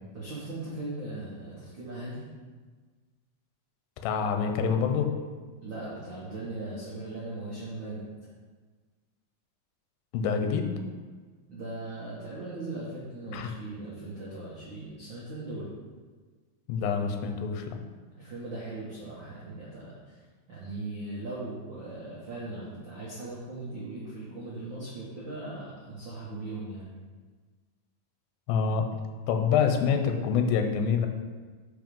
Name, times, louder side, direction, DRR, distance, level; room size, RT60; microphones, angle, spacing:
voice 1, 0.1-2.2 5.6-8.1 11.5-15.7 18.2-20.2 20.5-26.9, right 2 dB, 85° right, -8 dB, 1.0 m, -39 dB
voice 2, 4.0-5.1 10.1-10.7 13.3-13.5 16.7-17.8 28.5-28.8 29.3-31.1, left 6 dB, 80° left, 5 dB, 2.4 m, -26 dB
5.5 x 5.2 x 5.3 m, 1.4 s
omnidirectional pair, 4.3 m